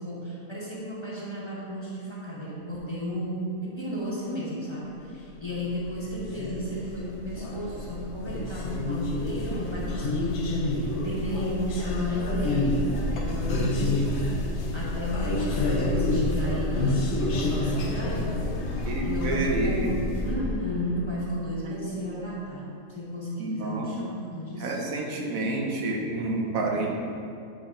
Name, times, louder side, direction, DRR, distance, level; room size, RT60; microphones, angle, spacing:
voice 1, 0.0-10.6 11.0-12.8 13.1-18.6 19.0-24.8, equal, 20° left, -7 dB, 1.2 m, -34 dB
sound 1, 5.4-20.4, left 2 dB, 60° left, 1.0 m, -28 dB
voice 2, 18.9-20.1 21.6-22.2 23.4-23.9 24.6-26.9, right 2 dB, 80° right, 0 dB, 1.3 m, -29 dB
8.7 x 4.5 x 3.7 m, 2.5 s
omnidirectional pair, 1.4 m